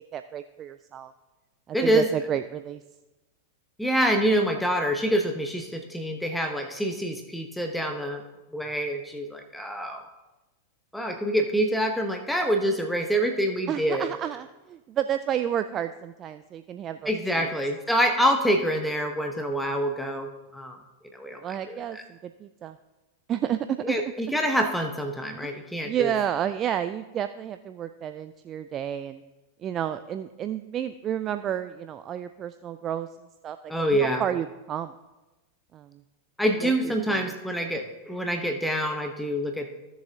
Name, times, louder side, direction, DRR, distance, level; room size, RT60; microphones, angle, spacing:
voice 1, 0.1-1.1 1.8-2.8 13.7-17.5 21.3-22.8 23.3-24.0 25.4-25.5 25.8-29.2 29.6-33.1 33.4-34.9 35.7-36.0 36.6-37.3, right 10 dB, 30° right, 10 dB, 0.3 m, -31 dB
voice 2, 1.7-2.1 3.8-8.2 8.5-10.0 10.9-14.1 17.1-20.8 21.1-22.0 23.8-26.1 33.7-34.2 36.4-39.7, equal, ahead, 4 dB, 0.8 m, -26 dB
15.5 x 7.1 x 2.8 m, 1.1 s
figure-of-eight pair, 90°, 0 cm